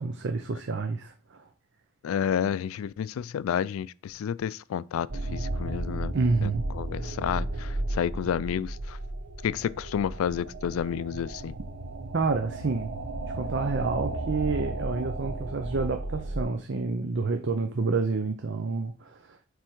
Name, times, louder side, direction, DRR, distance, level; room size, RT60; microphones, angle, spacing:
voice 1, 0.0-1.4 6.1-6.6 12.1-12.9 13.3-19.4, right 4 dB, 55° right, 0.6 m, -29 dB
voice 2, 2.0-6.1 6.4-9.0 9.4-11.6, left 8 dB, 80° left, 0.3 m, -30 dB
sound 1, 5.1-16.4, right 2 dB, 75° right, 1.0 m, -34 dB
7.7 x 3.4 x 4.5 m
head